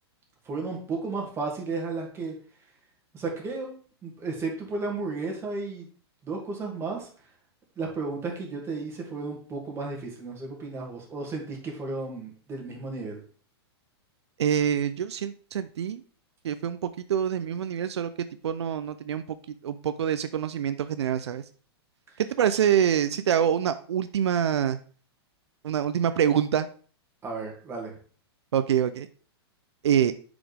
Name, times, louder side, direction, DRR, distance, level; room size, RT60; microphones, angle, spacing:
voice 1, 0.5-2.3 3.1-3.7 4.0-5.9 6.2-7.1 7.8-13.2 27.2-27.9, right 3 dB, 20° right, -1 dB, 2.2 m, -33 dB
voice 2, 14.4-16.0 16.4-18.1 18.4-19.2 19.6-21.4 22.2-24.8 25.6-26.7 28.5-29.1 29.8-30.1, right 9 dB, 85° right, 11 dB, 0.5 m, -25 dB
7.2 x 5.0 x 3.4 m, 0.41 s
hypercardioid pair, 125°, 14 cm